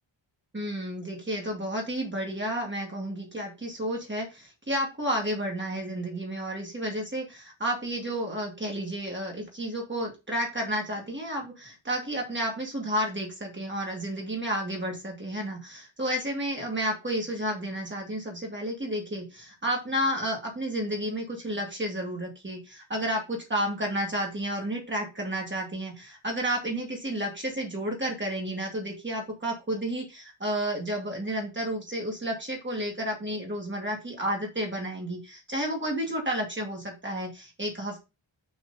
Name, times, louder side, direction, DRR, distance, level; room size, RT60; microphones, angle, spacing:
voice 1, 0.5-38.1, right 1 dB, 25° right, 0 dB, 2.5 m, -31 dB
6.3 x 5.8 x 4.2 m, 0.26 s
wide cardioid pair, 150°, 47 cm